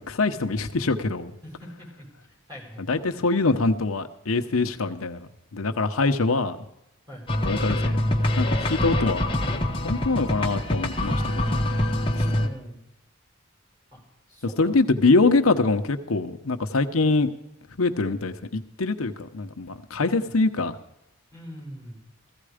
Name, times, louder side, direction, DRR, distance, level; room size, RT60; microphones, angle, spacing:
voice 1, 0.1-1.3 2.8-5.2 5.5-6.6 7.4-8.0 8.4-9.2 9.8-11.6 14.6-17.3 17.8-20.8, left 3 dB, 85° left, 7 dB, 0.9 m, -24 dB
voice 2, 1.4-2.1 2.5-2.9 7.1-7.4 12.1-12.8 13.9-14.0 14.3-15.1 19.9-20.4 21.3-22.0, equal, 20° right, -3 dB, 6.0 m, -43 dB
sound 1, 7.3-12.5, left 1 dB, 25° left, 1.3 m, -25 dB
15.5 x 15.0 x 5.0 m, 0.83 s
head